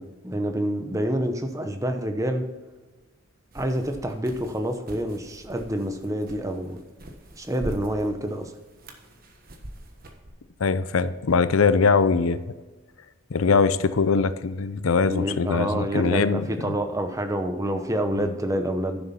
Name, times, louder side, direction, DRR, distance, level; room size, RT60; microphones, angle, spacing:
voice 1, 0.0-2.5 3.5-6.8 7.4-8.5 15.0-19.0, right 1 dB, 15° right, 6 dB, 0.8 m, -27 dB
sound 1, 3.5-10.3, right 1 dB, 45° right, 1.3 m, -43 dB
voice 2, 10.6-12.4 13.3-16.4 18.2-18.3, left 4 dB, 85° left, 14 dB, 0.6 m, -22 dB
11.0 x 7.0 x 4.3 m, 1.3 s
head